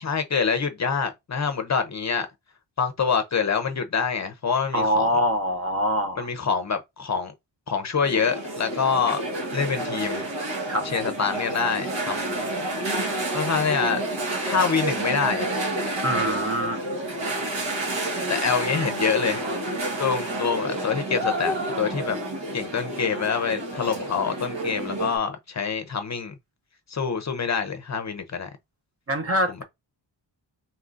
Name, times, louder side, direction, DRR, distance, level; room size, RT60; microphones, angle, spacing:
voice 1, 0.0-2.3 2.8-5.1 6.2-7.3 7.7-9.2 9.5-10.2 10.8-12.4 13.3-14.0 14.4-15.5 18.3-19.4 20.0-22.2 22.5-26.3 26.9-28.5, left 6 dB, 40° left, 0.6 m, -26 dB
voice 2, 4.7-6.3 10.7-10.9 16.0-16.8 29.1-29.6, equal, 30° right, 0.8 m, -24 dB
sound 1, 8.0-25.2, right 1 dB, 70° right, 1.8 m, -29 dB
4.2 x 3.7 x 2.5 m
wide cardioid pair, 180°, 45 cm